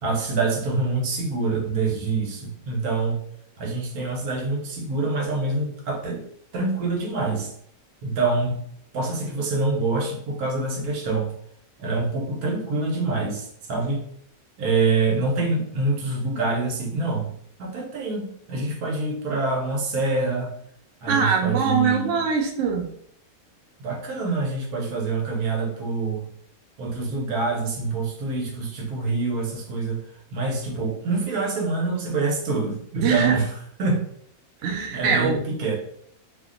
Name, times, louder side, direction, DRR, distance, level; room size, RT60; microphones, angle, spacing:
voice 1, 0.0-3.2 3.6-6.2 6.5-7.5 8.0-8.6 8.9-11.3 11.8-14.0 14.6-17.3 17.6-20.5 21.0-22.2 23.8-26.3 26.8-30.0 30.3-33.5 33.8-34.1 34.9-35.8, right 3 dB, 85° right, 0 dB, 1.3 m, -26 dB
voice 2, 21.1-22.9 33.0-33.5 34.6-35.4, right 6 dB, 65° right, 1 dB, 0.9 m, -22 dB
2.9 x 2.1 x 3.7 m, 0.66 s
omnidirectional pair, 1.5 m